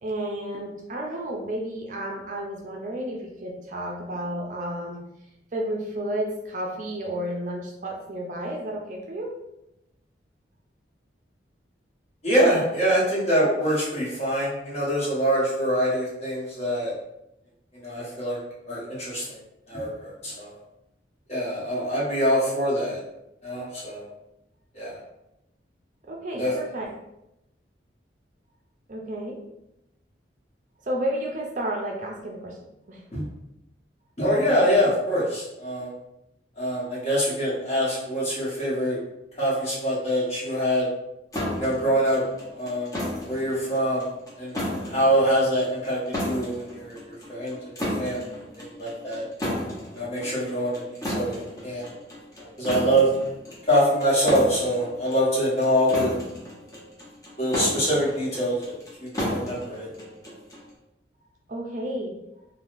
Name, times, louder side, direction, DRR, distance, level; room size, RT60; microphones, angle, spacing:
voice 1, 0.0-5.0 5.5-9.3 26.0-26.9 28.9-29.4 30.9-32.6 32.9-33.0 61.5-62.2, right 1 dB, 45° right, 0 dB, 0.4 m, -31 dB
voice 2, 12.2-16.9 17.8-18.4 18.7-19.4 19.7-20.5 21.3-23.0 23.4-24.0 24.7-25.0 26.4-26.5 33.1-33.2 34.2-35.9 36.6-39.0 39.4-40.9 41.5-42.2 42.5-42.9 43.3-44.1 44.4-47.0 47.3-48.2 48.6-49.3 49.9-51.4 51.6-51.9 52.4-53.1 53.7-56.1 57.4-58.7 59.0-59.9, equal, 35° left, -7 dB, 1.1 m, -24 dB
sound 1, 41.3-60.7, left 1 dB, 20° left, 0.8 m, -34 dB
3.4 x 2.3 x 2.5 m, 0.88 s
head